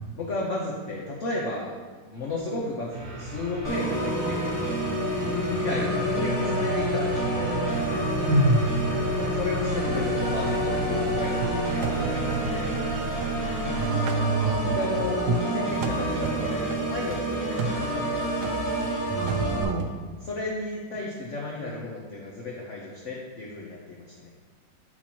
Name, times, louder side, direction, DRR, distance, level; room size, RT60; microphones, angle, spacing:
voice 1, 0.1-1.7 2.0-4.6 5.2-7.6 9.3-12.7 14.6-18.2 20.2-24.3, left 2 dB, 55° left, -3 dB, 0.9 m, -33 dB
sound 1, 2.9-13.8, right 3 dB, 50° right, 1.6 m, -33 dB
Organ, 3.6-19.6, equal, 15° left, 0.8 m, -28 dB
voice 2, 8.3-8.8 13.4-14.7 15.3-15.4 19.1-19.9, right 2 dB, 85° right, 4 dB, 1.4 m, -25 dB
sound 2, 10.5-13.7 14.1-15.5 15.8-20.0, right 3 dB, 70° right, 1.1 m, -36 dB
8.7 x 4.3 x 2.9 m, 1.4 s
omnidirectional pair, 2.0 m